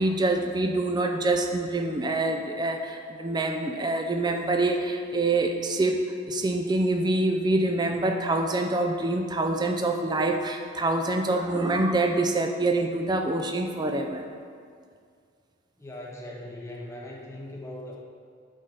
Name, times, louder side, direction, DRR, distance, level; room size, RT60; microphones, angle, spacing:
voice 1, 0.0-14.2, right 2 dB, 20° right, 4 dB, 0.4 m, -26 dB
voice 2, 15.8-18.0, left 1 dB, 15° left, -3 dB, 1.1 m, -40 dB
8.2 x 4.0 x 5.6 m, 2.2 s
head